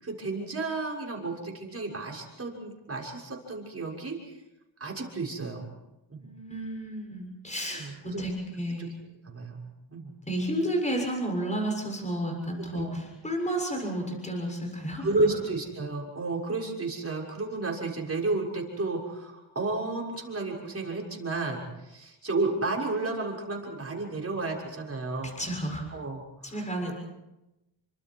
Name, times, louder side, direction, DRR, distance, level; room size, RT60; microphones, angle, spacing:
voice 1, 0.0-4.4 4.8-5.7 6.1-6.3 7.7-8.2 9.2-9.6 9.9-10.1 12.7-13.0 15.0-25.3 25.9-26.9, right 3 dB, 30° right, -1 dB, 6.4 m, -32 dB
voice 2, 6.1-8.9 9.9-15.1 25.4-25.8 26.4-26.9, right 1 dB, 15° left, 2 dB, 6.9 m, -32 dB
29.5 x 25.5 x 4.8 m, 0.94 s
cardioid pair, 110°, 47 cm